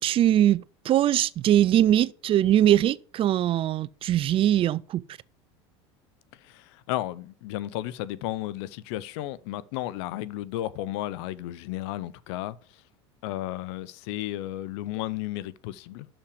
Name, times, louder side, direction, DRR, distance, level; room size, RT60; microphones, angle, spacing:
voice 1, 0.0-5.0, right 12 dB, 35° right, 0.4 m, -22 dB
voice 2, 6.4-12.6 13.2-16.1, left 15 dB, 70° left, 0.5 m, -33 dB
6.5 x 5.9 x 4.9 m
hypercardioid pair, 90°, 15 cm